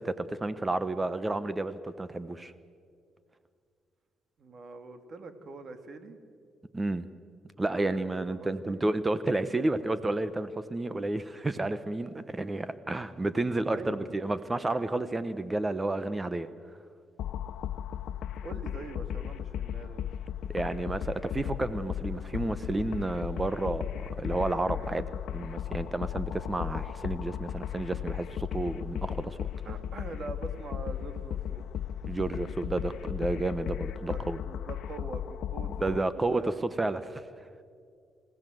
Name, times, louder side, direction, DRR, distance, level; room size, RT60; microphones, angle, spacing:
voice 1, 0.0-2.5 6.7-7.1 7.6-16.5 20.5-29.5 32.1-34.4 35.8-37.2, right 2 dB, 20° right, 14 dB, 0.9 m, -31 dB
voice 2, 4.4-6.2 7.6-8.8 13.7-14.2 18.4-20.1 29.6-31.6 34.1-35.8 36.2-36.6, right 3 dB, 50° right, 8 dB, 2.3 m, -43 dB
sound 1, 17.2-36.0, left 10 dB, 75° left, 0.5 m, -36 dB
28.5 x 16.0 x 7.8 m, 2.2 s
cardioid pair, 90°, 0 cm